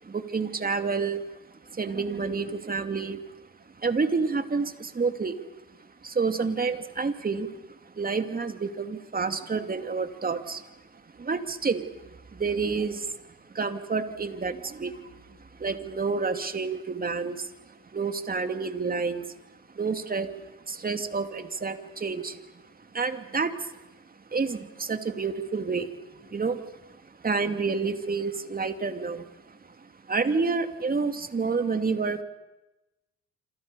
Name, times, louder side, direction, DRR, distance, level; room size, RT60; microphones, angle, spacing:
voice 1, 0.0-3.4 3.8-5.5 5.8-13.2 13.5-19.3 19.7-22.4 22.8-23.8 24.1-32.2, right 4 dB, 30° right, 8 dB, 2.6 m, -30 dB
27.5 x 27.5 x 6.9 m, 1.0 s
cardioid pair, 90°, 30 cm